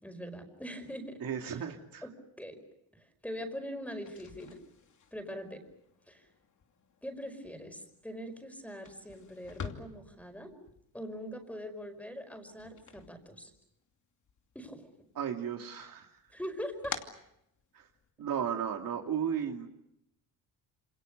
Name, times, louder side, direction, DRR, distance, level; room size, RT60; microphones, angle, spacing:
voice 1, 0.0-1.2 1.5-1.6 2.0-2.1 2.4-2.6 3.0-4.6 5.1-5.6 6.1-6.2 7.0-10.5 10.9-13.5 14.6-14.9 16.3-17.0, equal, 5° left, 7 dB, 5.2 m, -42 dB
voice 2, 1.2-2.0 15.1-16.1 17.7-17.9 18.2-19.7, right 8 dB, 65° right, 3 dB, 2.7 m, -34 dB
sound 1, 3.9-13.9 14.2-15.1 15.5-18.1, left 6 dB, 50° left, 2.8 m, -48 dB
28.0 x 27.0 x 6.8 m, 0.81 s
cardioid pair, 110°, 37 cm